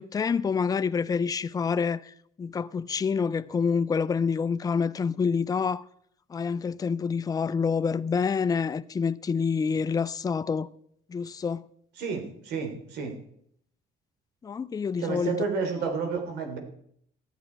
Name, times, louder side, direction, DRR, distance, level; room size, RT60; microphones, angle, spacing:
voice 1, 0.0-5.9 6.3-10.7 11.1-11.6 14.4-15.4 15.8-15.9, left 5 dB, 20° left, 0.5 m, -27 dB
voice 2, 12.0-13.1 15.0-16.6, right 5 dB, 85° right, 3.3 m, -31 dB
14.5 x 10.5 x 4.6 m
cardioid pair, 110°, 17 cm